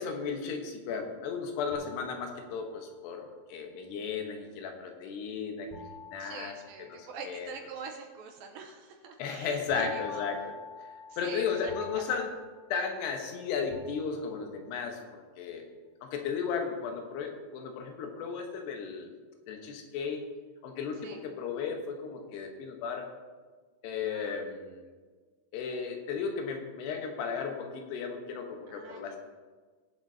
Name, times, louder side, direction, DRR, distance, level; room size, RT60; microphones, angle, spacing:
voice 1, 0.0-5.7 6.1-6.5 6.8-7.0 7.3-7.5 9.2-10.5 11.2-12.3 12.7-15.7 16.0-19.1 19.5-20.2 20.6-23.1 23.8-24.9 25.5-29.2, left 6 dB, 90° left, 3 dB, 3.2 m, -35 dB
sound 1, 1.7-2.9 5.7-7.3 9.7-13.3 13.7-14.6, left 5 dB, 70° left, 2.4 m, -47 dB
voice 2, 6.2-10.2 11.2-12.1 21.0-21.2 24.0-24.4 28.7-29.2, right 5 dB, 75° right, 3 dB, 2.3 m, -44 dB
20.5 x 7.3 x 2.8 m, 1.4 s
omnidirectional pair, 4.7 m